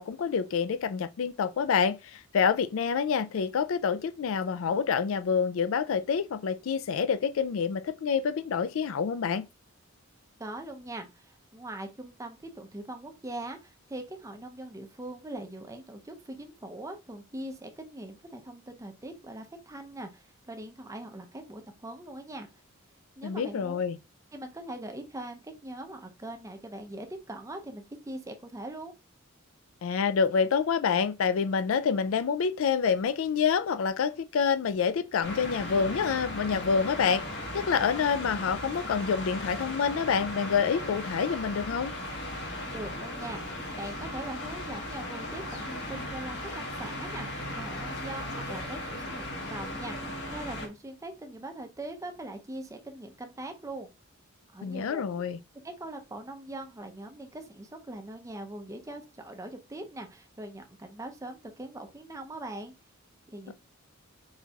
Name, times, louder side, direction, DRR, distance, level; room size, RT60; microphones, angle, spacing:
voice 1, 0.0-9.5 23.2-24.0 29.8-37.2 37.5-41.9 54.6-55.4 63.5-63.6, left 6 dB, 70° left, 0.4 m, -27 dB
voice 2, 10.4-22.5 23.2-23.8 24.3-28.9 42.7-53.9 54.5-55.2 55.6-62.7 63.3-63.5, right 1 dB, 15° right, 0.6 m, -41 dB
sound 1, 35.2-50.7, left 1 dB, 55° left, 1.2 m, -37 dB
4.1 x 4.0 x 2.3 m
head